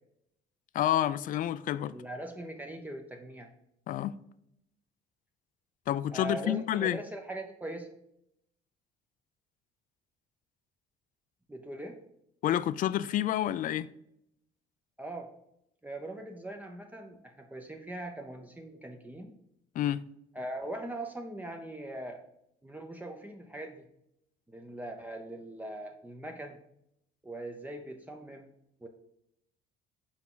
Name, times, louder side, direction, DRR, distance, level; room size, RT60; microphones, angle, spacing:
voice 1, 0.7-1.9 3.9-4.1 5.9-7.0 12.4-13.9 19.8-20.0, left 12 dB, 55° left, 0.4 m, -29 dB
voice 2, 1.8-3.5 6.1-7.9 11.5-12.0 15.0-15.3 15.8-19.3 20.3-22.2 22.6-23.9 24.5-26.6 27.2-28.5 28.8-28.9, right 1 dB, 10° right, 0.6 m, -41 dB
6.0 x 4.4 x 3.8 m
cardioid pair, 110°, 17 cm